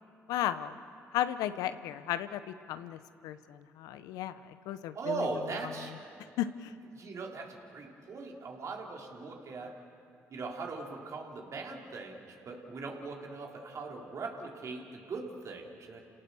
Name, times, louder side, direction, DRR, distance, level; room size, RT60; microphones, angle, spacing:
voice 1, 0.3-0.8 1.1-5.3 6.4-6.7, left 12 dB, 80° left, 12 dB, 0.8 m, -35 dB
voice 2, 4.9-5.9 6.9-9.8 10.3-16.0, right 3 dB, 55° right, 0 dB, 3.6 m, -40 dB
29.5 x 18.0 x 7.0 m, 2.5 s
supercardioid pair, 60°, 6 cm